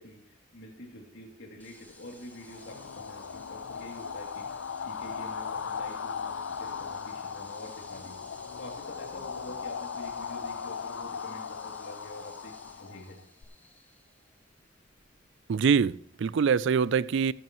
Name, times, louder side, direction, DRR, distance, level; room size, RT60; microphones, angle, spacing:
voice 1, 0.0-13.2, left 1 dB, 65° left, 2.7 m, -47 dB
sound 1, 1.6-15.5, left 2 dB, 10° left, 1.6 m, -55 dB
sound 2, 2.3-13.4, left 6 dB, 90° left, 0.6 m, -38 dB
voice 2, 15.5-17.3, right 6 dB, 65° right, 0.4 m, -24 dB
14.5 x 11.0 x 3.1 m
head